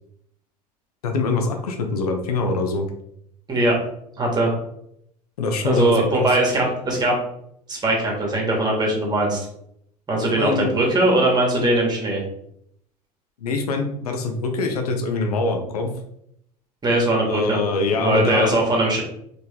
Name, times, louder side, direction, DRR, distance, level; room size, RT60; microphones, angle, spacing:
voice 1, 1.0-2.9 5.4-6.4 10.4-10.7 13.4-15.9 17.3-18.6, left 3 dB, 70° left, 4 dB, 0.7 m, -24 dB
voice 2, 4.2-4.5 5.7-7.2 7.7-9.5 10.1-12.2 16.8-17.6 18.0-19.0, right 1 dB, 20° right, -1 dB, 1.9 m, -20 dB
4.3 x 3.3 x 3.6 m, 0.73 s
figure-of-eight pair, 70°, 20 cm